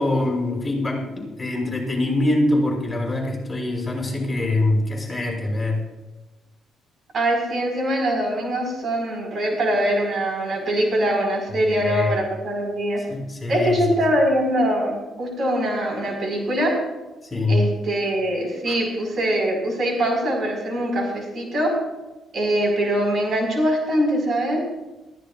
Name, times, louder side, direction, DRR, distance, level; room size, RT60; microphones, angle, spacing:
voice 1, 0.0-5.8 11.7-12.1 13.1-13.8 17.3-17.6 18.7-18.8, left 2 dB, 15° left, -2 dB, 5.6 m, -24 dB
voice 2, 7.1-13.0 13.5-16.8 17.5-21.8 22.3-24.6, right 1 dB, 55° right, 1 dB, 4.6 m, -23 dB
22.0 x 14.5 x 2.4 m, 1.1 s
cardioid pair, 90°, 0 cm